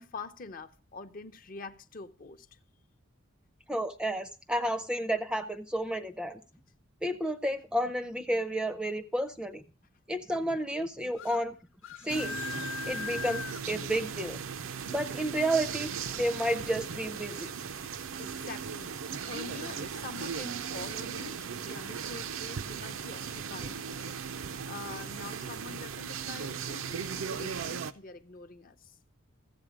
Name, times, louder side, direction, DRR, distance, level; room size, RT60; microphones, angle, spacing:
voice 1, 0.0-2.6 18.2-28.9, left 4 dB, 40° left, 0.6 m, -45 dB
voice 2, 3.7-6.4 7.0-9.6 10.1-11.6 12.0-14.4 14.9-17.5, right 1 dB, 5° right, 0.5 m, -31 dB
sound 1, 11.2-11.4 11.8-13.6, left 7 dB, 75° left, 0.9 m, -39 dB
sound 2, 12.1-27.9, right 6 dB, 75° right, 0.6 m, -37 dB
14.0 x 8.0 x 5.0 m
head